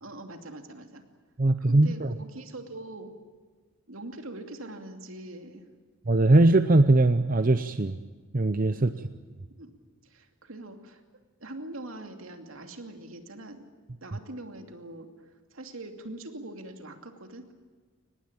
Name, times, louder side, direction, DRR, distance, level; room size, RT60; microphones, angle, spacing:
voice 1, 0.0-1.0 1.7-3.1 3.9-5.6 8.7-9.1 9.6-9.7 10.0-11.0 11.4-13.6 14.0-17.5, right 2 dB, 75° right, 6 dB, 2.6 m, -43 dB
voice 2, 1.4-2.1 6.1-8.0 8.3-8.9, right 2 dB, 40° right, 11 dB, 0.7 m, -21 dB
24.0 x 20.0 x 8.8 m, 1.4 s
head